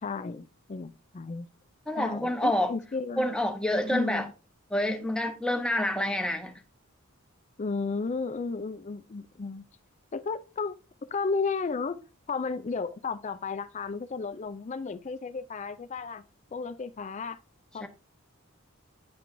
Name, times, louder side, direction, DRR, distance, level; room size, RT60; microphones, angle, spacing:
voice 1, 0.0-1.5 2.0-3.4 3.9-4.3 7.6-9.6 10.1-10.8 11.1-12.0 12.3-16.2 16.5-17.4 17.7-17.9, left 4 dB, 35° left, 0.4 m, -33 dB
voice 2, 1.9-2.7 3.2-4.3 4.7-6.5 17.8-17.9, left 1 dB, 5° left, 0.8 m, -28 dB
9.4 x 4.6 x 2.6 m
head